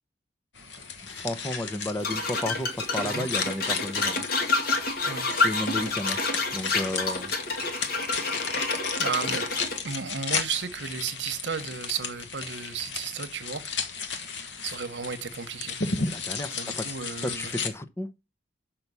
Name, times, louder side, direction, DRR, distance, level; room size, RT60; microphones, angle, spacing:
sound 1, 0.5-17.7, left 5 dB, 80° left, 1.3 m, -35 dB
voice 1, 1.1-4.2 5.4-6.2 6.5-7.3 16.0-17.0 17.2-18.1, left 1 dB, 15° left, 0.7 m, -33 dB
sound 2, 2.0-9.8, left 3 dB, 55° left, 1.7 m, -28 dB
voice 2, 9.0-9.4 9.8-13.6 14.6-15.8 16.5-17.5, right 6 dB, 75° right, 1.0 m, -33 dB
6.0 x 5.7 x 6.7 m
head